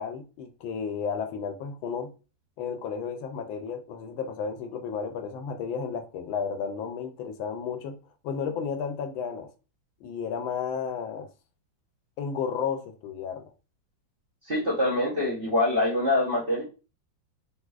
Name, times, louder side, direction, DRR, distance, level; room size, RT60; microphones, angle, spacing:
voice 1, 0.0-2.1 2.6-8.0 8.2-9.5 10.0-11.3 12.2-13.5, left 6 dB, 80° left, 1.3 m, -33 dB
voice 2, 14.5-16.6, left 1 dB, 40° right, 0.8 m, -25 dB
3.6 x 2.7 x 2.3 m
omnidirectional pair, 2.2 m